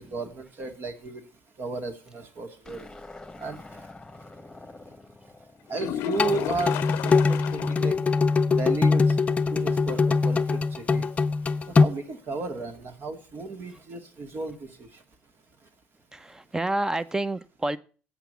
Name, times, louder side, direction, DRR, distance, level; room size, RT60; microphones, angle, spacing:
voice 1, 0.1-1.2 1.6-2.9 3.4-3.8 5.7-7.9 8.5-9.2 9.5-11.1 11.7-14.9, right 3 dB, 50° right, 7 dB, 2.1 m, -34 dB
sound 1, 2.6-7.0, left 2 dB, 10° left, 1.4 m, -47 dB
sound 2, 5.7-8.0 8.3-8.4 8.8-8.9 12.7-12.8, left 12 dB, 70° left, 0.6 m, -34 dB
sound 3, 6.2-11.9, left 4 dB, 30° left, 0.6 m, -22 dB
voice 2, 16.1-17.8, right 2 dB, 15° right, 16 dB, 0.7 m, -29 dB
8.3 x 5.8 x 8.0 m, 0.38 s
supercardioid pair, 70°, 5 cm